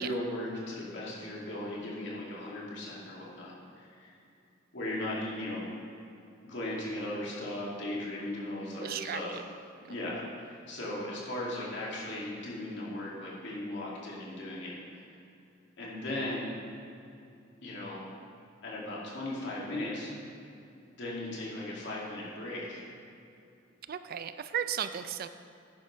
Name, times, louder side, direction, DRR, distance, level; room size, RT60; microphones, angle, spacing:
voice 1, 0.0-4.2 4.7-5.7 6.4-9.4 9.9-15.1 15.8-16.5 17.6-18.1 18.6-20.1 20.9-22.9, left 1 dB, 65° left, -5 dB, 2.5 m, -37 dB
voice 2, 8.8-9.4 9.9-10.0 23.9-25.3, right 9 dB, 50° right, 11 dB, 0.4 m, -35 dB
10.5 x 10.5 x 3.3 m, 2.6 s
head